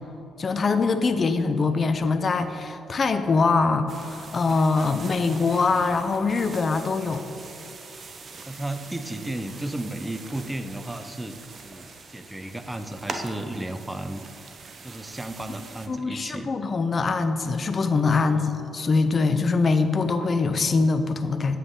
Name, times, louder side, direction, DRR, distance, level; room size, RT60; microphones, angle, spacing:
voice 1, 0.4-7.2 15.9-21.6, left 4 dB, 40° left, 9 dB, 0.6 m, -23 dB
sound 1, 3.9-15.9, right 3 dB, 45° right, 0.9 m, -42 dB
voice 2, 8.5-14.2 14.8-16.5 18.2-18.6, right 1 dB, 10° right, 9 dB, 0.6 m, -34 dB
9.4 x 8.4 x 3.8 m, 2.7 s
cardioid pair, 90°, 0 cm